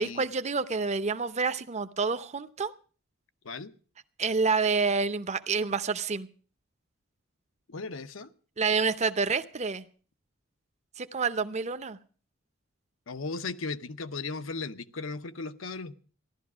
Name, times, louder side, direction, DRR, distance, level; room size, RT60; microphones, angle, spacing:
voice 1, 0.0-2.7 4.2-6.3 8.6-9.8 11.0-12.0, right 4 dB, 35° right, 0.7 m, -28 dB
voice 2, 7.7-8.3 13.1-15.9, left 4 dB, 75° left, 0.8 m, -36 dB
15.0 x 12.0 x 6.1 m
head